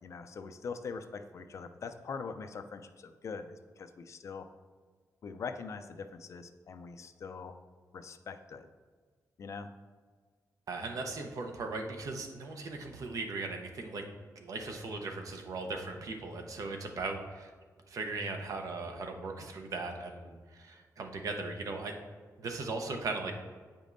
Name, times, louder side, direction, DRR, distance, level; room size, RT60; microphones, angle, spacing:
voice 1, 0.0-4.5 5.2-7.5 7.9-8.7 9.4-9.7, left 5 dB, 50° left, 9 dB, 0.4 m, -42 dB
voice 2, 10.7-14.1 14.4-17.5 17.9-21.9 22.4-23.3, right 3 dB, 65° right, 4 dB, 0.8 m, -38 dB
8.2 x 5.1 x 2.6 m, 1.6 s
wide cardioid pair, 135°, 6 cm